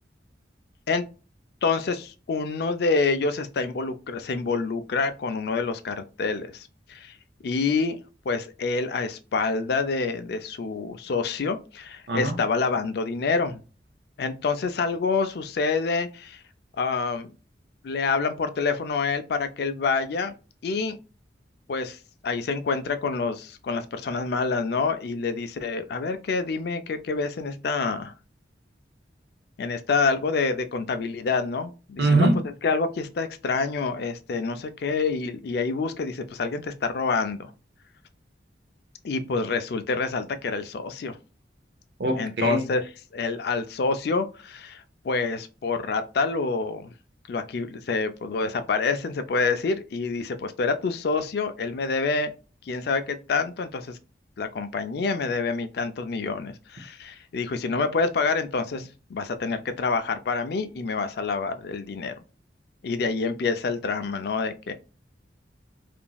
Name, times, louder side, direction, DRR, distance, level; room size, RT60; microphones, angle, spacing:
voice 1, 1.6-7.1 7.4-8.0 8.3-13.6 14.2-16.4 16.8-17.3 17.8-20.3 20.6-21.0 21.7-22.0 22.2-28.1 29.6-32.3 32.6-37.5 39.0-41.2 42.2-46.9 47.3-52.3 52.7-54.0 54.4-62.1 62.8-64.7, left 4 dB, 60° left, 0.4 m, -27 dB
voice 2, 12.1-12.4 32.0-32.4 42.0-42.6, right 2 dB, 60° right, 0.6 m, -22 dB
2.9 x 2.5 x 2.3 m
head